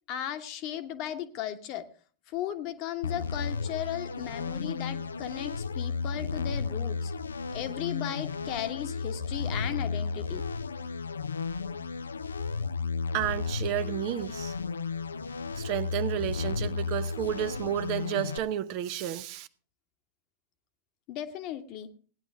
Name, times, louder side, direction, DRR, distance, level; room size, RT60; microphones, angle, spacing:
voice 1, 0.1-1.9 2.3-7.1 7.5-10.5 21.1-21.9, left 11 dB, 40° left, 1.2 m, -36 dB
sound 1, 3.0-18.4, left 4 dB, 75° left, 0.5 m, -33 dB
voice 2, 13.1-14.5 15.6-19.5, right 11 dB, 45° right, 0.7 m, -31 dB
16.5 x 10.0 x 3.6 m
figure-of-eight pair, 90°, 0 cm